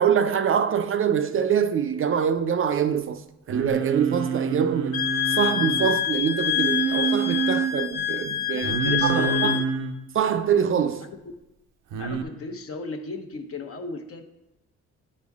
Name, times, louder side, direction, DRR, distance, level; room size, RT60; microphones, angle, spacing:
voice 1, 0.0-3.2 3.5-8.7 9.0-9.5 10.1-11.1, right 8 dB, 45° right, 0.5 m, -24 dB
Singing, 3.5-5.9 6.5-7.7 8.6-10.0 11.9-12.2, right 7 dB, 90° right, 0.7 m, -27 dB
Wind instrument woodwind instrument, 4.9-9.7, left 11 dB, 90° left, 0.6 m, -26 dB
voice 2, 8.5-9.6 12.0-14.2, left 4 dB, 50° left, 0.9 m, -35 dB
9.6 x 4.3 x 3.5 m
cardioid pair, 90°, 30 cm